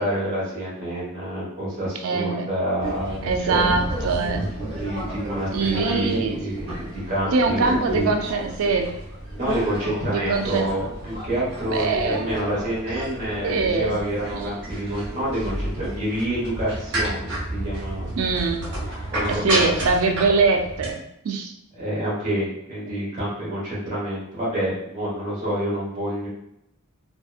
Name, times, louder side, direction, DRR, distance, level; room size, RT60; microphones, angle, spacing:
voice 1, 0.0-3.7 4.3-8.1 9.3-18.2 19.1-19.7 21.7-26.3, right 1 dB, 35° right, -7 dB, 1.2 m, -28 dB
voice 2, 2.0-2.5 3.2-4.4 5.5-6.4 7.3-8.9 10.1-10.7 11.7-12.3 13.4-13.9 14.3-14.5 18.2-18.6 19.3-21.5, right 4 dB, 75° right, 4 dB, 0.4 m, -23 dB
sound 1, 2.8-20.9, right 1 dB, 55° right, 0.9 m, -31 dB
2.8 x 2.3 x 2.3 m, 0.79 s
head